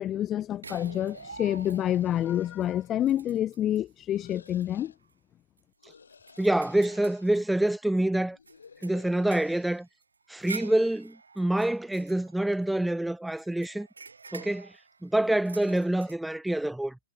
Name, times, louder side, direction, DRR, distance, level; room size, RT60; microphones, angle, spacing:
voice 1, 0.0-4.9, left 11 dB, 20° left, 0.6 m, -28 dB
sound 1, 0.6-2.1 2.6-2.7 3.0-3.9 4.4-4.6 5.0-5.1 5.6-8.0 8.5-12.9 13.4-16.2, right 4 dB, 75° right, 5.5 m, -47 dB
sound 2, 1.1-3.4 4.1-5.0 5.8-7.4 8.2-9.8, left 5 dB, 70° left, 6.1 m, -55 dB
voice 2, 6.4-8.4 8.8-9.9 10.3-13.9 14.3-14.7 15.0-17.0, right 1 dB, 5° right, 1.4 m, -26 dB
figure-of-eight pair, 115°, 0 cm